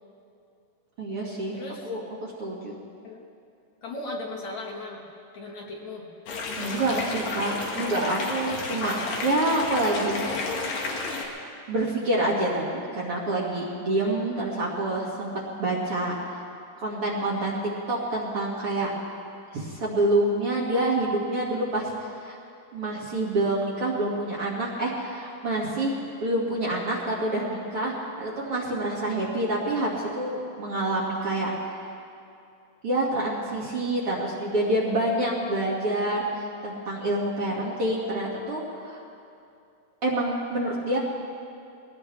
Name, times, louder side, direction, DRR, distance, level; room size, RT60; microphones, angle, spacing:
voice 1, 1.0-1.6 1.9-2.7 6.6-10.7 11.7-15.3 15.6-16.4 16.8-18.9 19.5-22.4 22.7-25.9 26.2-31.5 32.8-39.0 40.0-41.0, right 1 dB, 45° right, -5 dB, 2.5 m, -27 dB
voice 2, 1.5-1.9 3.0-3.2 3.8-5.0 5.3-6.1, left 2 dB, 60° left, -2 dB, 2.5 m, -37 dB
sound 1, 6.3-11.2, left 3 dB, 75° left, 3.4 m, -31 dB
21.5 x 17.5 x 3.3 m, 2.5 s
omnidirectional pair, 4.1 m